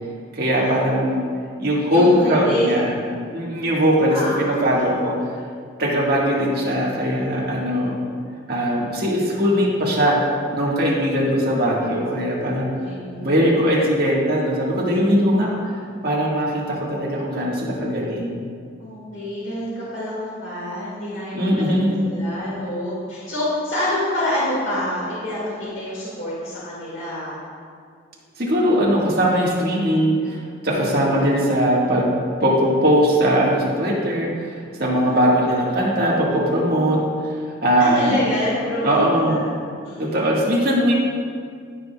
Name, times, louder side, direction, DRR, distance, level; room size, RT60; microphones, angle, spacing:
voice 1, 0.3-1.2 1.6-2.9 3.3-5.1 5.8-8.0 8.5-10.2 10.5-12.7 13.2-15.5 16.0-18.4 21.3-22.0 28.4-30.4 30.6-32.1 32.4-37.0 37.4-38.2 38.8-39.4 40.0-40.9, equal, 55° right, -4 dB, 1.7 m, -20 dB
voice 2, 1.9-2.7 4.1-4.8 12.8-13.6 15.4-15.5 18.8-21.8 22.0-27.4 30.7-31.3 35.0-35.2 37.8-39.0 39.3-39.4 39.8-40.3, left 1 dB, 85° left, -8 dB, 2.0 m, -27 dB
14.0 x 5.6 x 2.3 m, 2.1 s
head